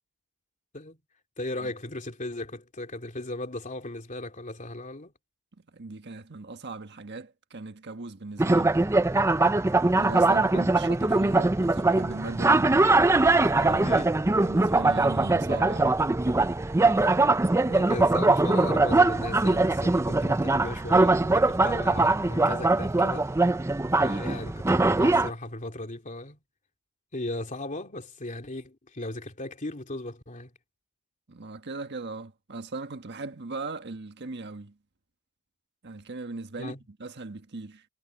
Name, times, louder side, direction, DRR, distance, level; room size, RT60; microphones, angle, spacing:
voice 1, 1.4-5.1 10.4-10.5 13.7-14.1 17.7-23.3 24.0-26.4 27.1-30.5 36.6-36.8, left 2 dB, 35° left, 3.0 m, -37 dB
voice 2, 5.7-8.7 9.9-12.7 13.4-14.0 14.4-16.0 31.3-34.8 35.8-37.8, right 3 dB, 50° right, 1.4 m, -38 dB
sound 1, 8.4-25.3, right 2 dB, 10° right, 0.4 m, -22 dB
head